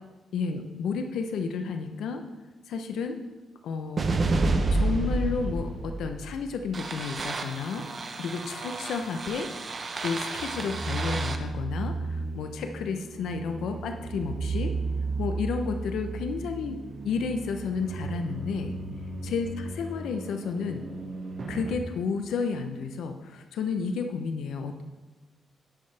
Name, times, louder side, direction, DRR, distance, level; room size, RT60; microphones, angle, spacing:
voice 1, 0.3-2.2 2.7-3.2 3.6-4.1 4.7-7.8 8.1-9.5 10.0-14.7 15.2-16.8 17.0-18.7 19.2-20.8 21.5-24.8, left 5 dB, 85° left, 6 dB, 0.8 m, -31 dB
sound 1, 4.0-21.8, right 3 dB, 35° right, 0.9 m, -32 dB
11.0 x 10.5 x 3.4 m, 1.2 s
cardioid pair, 130°, 0 cm